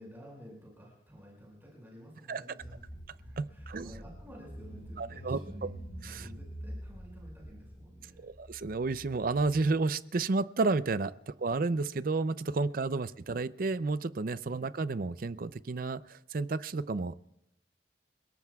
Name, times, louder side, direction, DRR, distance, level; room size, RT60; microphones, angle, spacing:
voice 1, 0.0-2.8 3.2-5.7 6.0-8.3 13.1-13.2, equal, 10° right, -3 dB, 5.7 m, -52 dB
Car / Engine, 2.6-9.6, equal, 45° left, 5.0 m, -46 dB
voice 2, 3.4-3.9 5.0-5.4 6.0-6.3 8.2-17.2, right 3 dB, 55° right, 15 dB, 0.5 m, -31 dB
29.5 x 18.0 x 2.3 m, 0.83 s
head